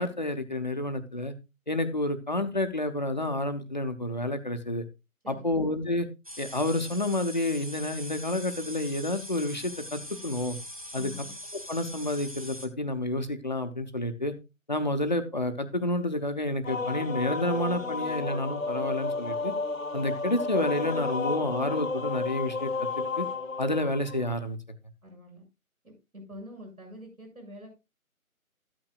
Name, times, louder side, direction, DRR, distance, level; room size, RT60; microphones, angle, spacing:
voice 1, 0.0-1.3 1.7-4.8 5.3-6.1 6.4-10.6 10.9-11.1 11.7-14.3 14.7-19.5 19.9-22.7 23.2-23.3 23.6-24.6, left 1 dB, 30° left, 8 dB, 0.7 m, -29 dB
voice 2, 5.2-5.6 11.0-11.3 25.0-25.4 25.8-27.7, left 1 dB, 80° right, 1 dB, 6.4 m, -45 dB
sound 1, 6.2-12.7, left 1 dB, 25° right, 0.7 m, -42 dB
sound 2, 16.6-24.3, left 3 dB, 65° left, 1.1 m, -32 dB
13.0 x 8.8 x 2.3 m, 0.25 s
figure-of-eight pair, 160°, 43 cm